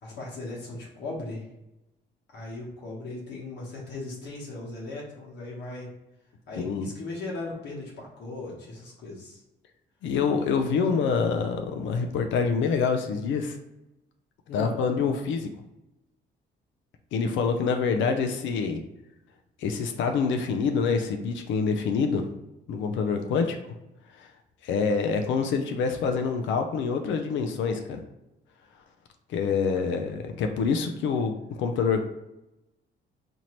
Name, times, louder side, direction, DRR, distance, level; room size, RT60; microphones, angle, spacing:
voice 1, 0.0-1.5 2.3-5.9 6.5-9.4 14.5-14.7, left 2 dB, 70° left, -3 dB, 1.1 m, -38 dB
voice 2, 6.6-6.9 10.0-13.6 14.5-15.5 17.1-18.8 19.6-22.2 22.7-23.6 24.2-24.3 24.6-28.0 29.3-32.0, left 5 dB, 85° left, 5 dB, 0.5 m, -26 dB
4.3 x 2.7 x 3.1 m, 0.92 s
cardioid pair, 115°, 19 cm